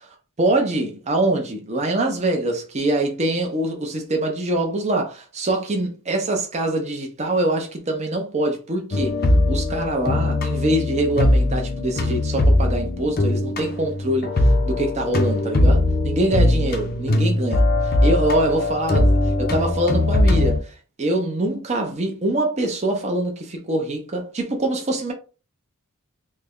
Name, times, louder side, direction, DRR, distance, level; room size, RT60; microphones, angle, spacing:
voice 1, 0.4-9.2 9.5-25.1, right 1 dB, 30° right, 0.6 m, -24 dB
sound 1, 8.9-20.6, left 1 dB, 45° left, 0.5 m, -20 dB
3.2 x 2.1 x 3.7 m
head